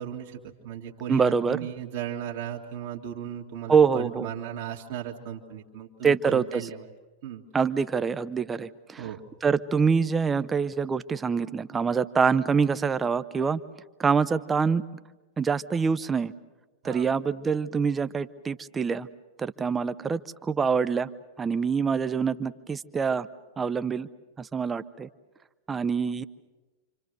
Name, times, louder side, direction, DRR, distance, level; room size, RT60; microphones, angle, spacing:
voice 1, 0.0-6.9 7.2-7.5 9.0-9.2 16.8-17.1, right 10 dB, 50° right, 0 dB, 2.0 m, -36 dB
voice 2, 1.1-1.6 3.7-4.3 6.0-6.5 7.5-9.1 9.4-13.6 14.0-14.8 15.4-16.3 16.8-19.1 19.4-21.1 21.4-23.3 23.6-24.1 24.4-25.1 25.7-26.2, right 5 dB, 15° right, 14 dB, 0.8 m, -25 dB
28.5 x 26.5 x 6.7 m, 1.2 s
figure-of-eight pair, 90°, 0 cm